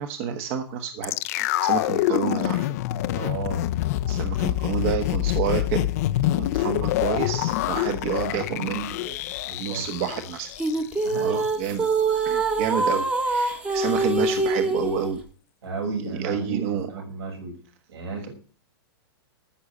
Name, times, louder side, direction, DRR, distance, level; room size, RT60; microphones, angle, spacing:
voice 1, 0.0-2.7 4.1-5.9 6.4-9.2 9.6-10.5 11.2-11.9 12.2-15.2 16.2-16.9, right 8 dB, 35° right, 8 dB, 1.3 m, -29 dB
sound 1, 1.0-11.2 11.4-11.5, left 15 dB, 40° left, 0.7 m, -26 dB
voice 2, 3.1-3.7 9.4-10.0 11.0-11.5 15.6-17.6 17.9-18.3, right 4 dB, 75° right, 1 dB, 7.9 m, -33 dB
sound 2, 10.6-15.1, right 3 dB, 10° right, 1.3 m, -24 dB
14.5 x 6.5 x 8.4 m, 0.41 s
hypercardioid pair, 165°, 13 cm